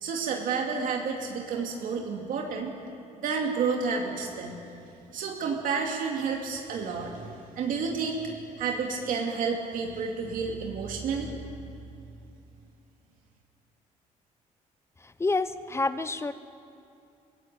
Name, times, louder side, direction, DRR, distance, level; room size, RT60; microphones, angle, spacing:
voice 1, 0.0-2.7 3.2-4.6 5.1-11.7, right 5 dB, 75° right, 1 dB, 2.4 m, -30 dB
voice 2, 15.2-16.3, left 3 dB, 20° left, 13 dB, 1.0 m, -28 dB
23.5 x 16.0 x 8.8 m, 2.7 s
cardioid pair, 105°, 14 cm